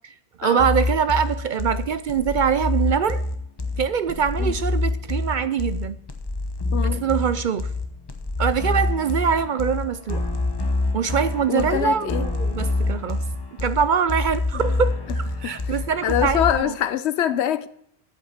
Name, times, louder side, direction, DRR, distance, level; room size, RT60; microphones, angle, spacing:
voice 1, 0.4-3.2 3.8-6.0 6.8-7.7 8.4-10.3 10.9-13.2 13.6-16.8, right 7 dB, 55° right, 0.6 m, -23 dB
sound 1, 0.6-16.6, left 2 dB, 25° left, 0.9 m, -26 dB
voice 2, 6.7-7.0 11.5-12.3 15.4-15.5 16.0-17.7, left 10 dB, 80° left, 0.9 m, -24 dB
8.3 x 8.1 x 7.2 m
omnidirectional pair, 1.1 m